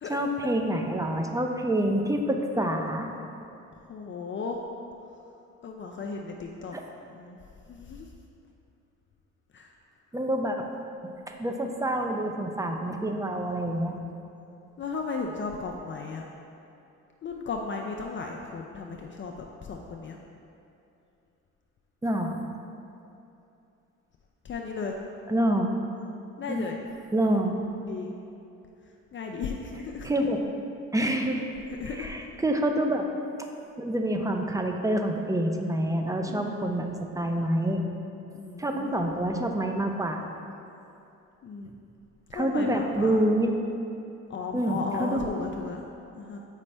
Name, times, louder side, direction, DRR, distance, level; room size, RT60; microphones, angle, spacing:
voice 1, 0.1-3.1 6.7-6.8 10.1-10.6 11.3-14.0 22.0-22.4 25.3-25.7 26.5-26.7 27.1-27.6 30.0-30.4 30.9-31.5 31.8-33.1 33.8-37.8 38.6-40.2 42.3-43.5 44.5-45.3, right 1 dB, 10° right, 3 dB, 0.6 m, -27 dB
voice 2, 3.9-4.6 5.6-6.8 7.1-7.4 7.7-8.1 9.5-9.7 12.8-13.5 14.8-16.3 17.2-20.2 24.4-25.0 26.4-26.8 27.2-27.5 27.8-28.1 29.1-30.1 31.8-32.1 36.3-36.9 38.3-38.9 41.4-41.7 42.3-43.2 44.3-45.8 46.2-46.4, left 4 dB, 40° left, 1 dB, 0.5 m, -35 dB
7.2 x 5.2 x 3.3 m, 2.7 s
cardioid pair, 90°, 30 cm